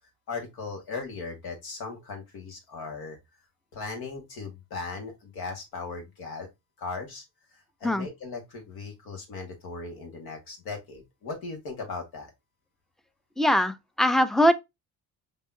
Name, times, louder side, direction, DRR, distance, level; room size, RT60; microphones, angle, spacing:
voice 1, 0.3-3.2 3.7-6.5 6.8-7.2 7.5-12.3, left 4 dB, 70° left, 1.8 m, -38 dB
voice 2, 13.4-14.5, equal, ahead, 0.5 m, -22 dB
5.5 x 2.9 x 2.7 m
supercardioid pair, 70°, 38 cm